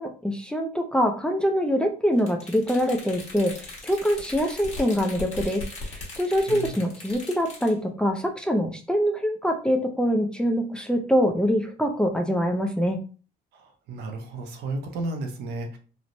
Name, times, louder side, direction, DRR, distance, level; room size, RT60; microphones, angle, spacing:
voice 1, 0.0-13.0, equal, 5° left, 3 dB, 0.4 m, -24 dB
sound 1, 2.2-7.7, left 2 dB, 40° left, 1.2 m, -39 dB
voice 2, 13.5-15.8, right 2 dB, 75° right, 5 dB, 0.7 m, -33 dB
3.0 x 2.0 x 2.6 m, 0.38 s
cardioid pair, 110°, 17 cm